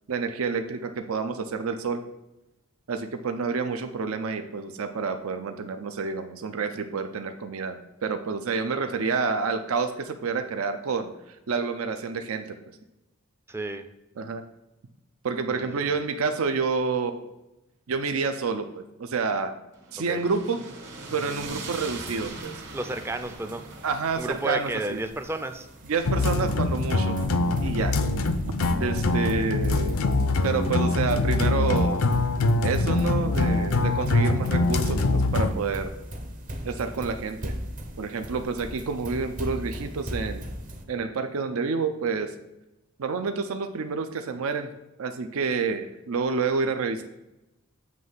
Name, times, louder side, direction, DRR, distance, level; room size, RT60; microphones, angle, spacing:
voice 1, 0.1-2.0 2.9-11.1 11.5-12.6 14.2-14.4 15.2-17.3 17.9-19.5 19.9-20.6 21.1-22.5 23.8-25.0 25.9-27.2 27.6-28.0 28.7-30.0 30.4-32.0 32.6-35.9 36.6-37.5 38.0-40.5 40.9-42.3 43.0-44.7 45.0-47.0, right 4 dB, 80° right, 7 dB, 0.5 m, -28 dB
voice 2, 13.5-13.9 15.5-15.9 20.1-20.2 22.7-23.6 24.2-25.7, right 2 dB, 10° right, 8 dB, 0.4 m, -32 dB
sound 1, 19.7-28.0, right 3 dB, 60° right, 1.1 m, -42 dB
sound 2, 21.3-40.8, equal, 40° right, 0.8 m, -38 dB
sound 3, 26.1-35.5, left 2 dB, 80° left, 0.5 m, -24 dB
7.6 x 3.2 x 5.5 m, 0.94 s
head